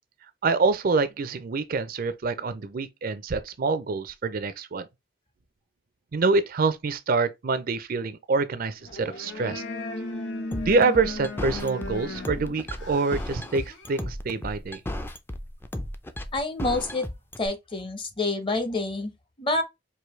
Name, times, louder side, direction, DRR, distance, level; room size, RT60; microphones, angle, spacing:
voice 1, 0.4-4.9 6.1-9.6 10.7-14.8, right 4 dB, 50° right, 0.5 m, -26 dB
sound 1, 8.8-14.0, left 2 dB, 75° left, 1.1 m, -36 dB
sound 2, 10.5-17.5, left 1 dB, 10° left, 0.4 m, -34 dB
voice 2, 16.3-17.1 17.4-19.1 19.4-19.6, left 2 dB, 30° left, 0.8 m, -27 dB
4.7 x 2.7 x 3.1 m
head